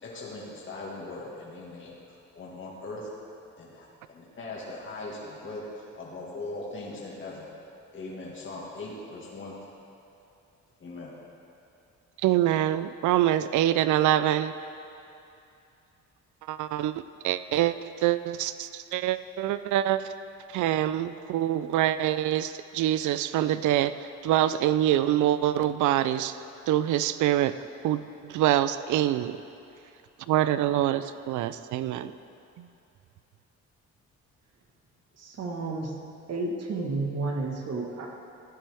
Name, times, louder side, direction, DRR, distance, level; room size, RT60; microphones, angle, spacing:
voice 1, 0.0-3.1 3.6-7.5 7.9-9.6 10.8-11.1, left 2 dB, 40° left, -5 dB, 1.9 m, -40 dB
voice 2, 12.2-14.5 16.5-20.1 20.5-26.4 26.7-27.5 27.8-29.4 30.3-32.1 32.6-32.7, right 12 dB, 75° right, 13 dB, 0.5 m, -25 dB
voice 3, 35.2-36.0 36.3-38.1, right 3 dB, 55° right, 1 dB, 1.5 m, -31 dB
14.5 x 9.1 x 3.5 m, 2.7 s
cardioid pair, 90°, 30 cm